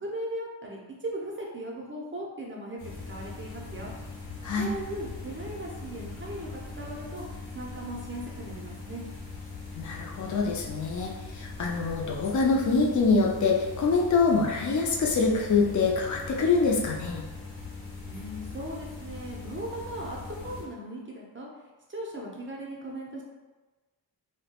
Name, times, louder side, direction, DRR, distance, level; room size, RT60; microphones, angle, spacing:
voice 1, 0.0-2.8 3.1-3.9 4.6-7.2 7.5-9.0 18.1-21.5 21.9-23.2, right 1 dB, 30° right, -2 dB, 0.5 m, -38 dB
sound 1, 2.8-20.6, left 3 dB, 80° left, 0.9 m, -41 dB
voice 2, 9.7-17.2, left 4 dB, 45° left, -1 dB, 0.4 m, -25 dB
2.2 x 2.1 x 2.8 m, 1.2 s
wide cardioid pair, 85°, 44 cm